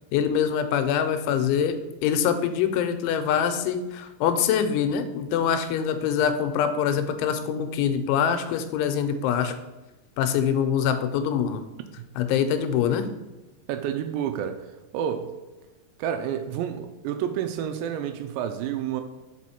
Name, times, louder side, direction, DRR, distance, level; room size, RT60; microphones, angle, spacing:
voice 1, 0.1-9.6 10.2-11.7 12.2-13.1, left 8 dB, 90° left, 3.0 m, -24 dB
voice 2, 13.7-14.7 14.9-15.3 16.0-19.0, right 9 dB, 85° right, 2.7 m, -29 dB
6.1 x 5.0 x 4.2 m
omnidirectional pair, 5.3 m